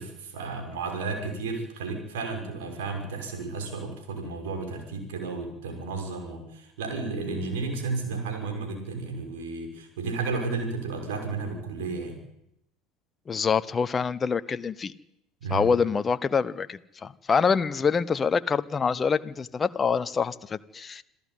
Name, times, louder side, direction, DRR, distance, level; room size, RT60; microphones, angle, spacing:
voice 1, 0.0-12.2 15.4-15.7, right 3 dB, 65° right, 5 dB, 6.0 m, -33 dB
voice 2, 13.3-14.9 15.5-21.0, left 5 dB, 25° left, 15 dB, 1.0 m, -26 dB
26.5 x 14.5 x 9.6 m, 0.81 s
figure-of-eight pair, 70°, 0 cm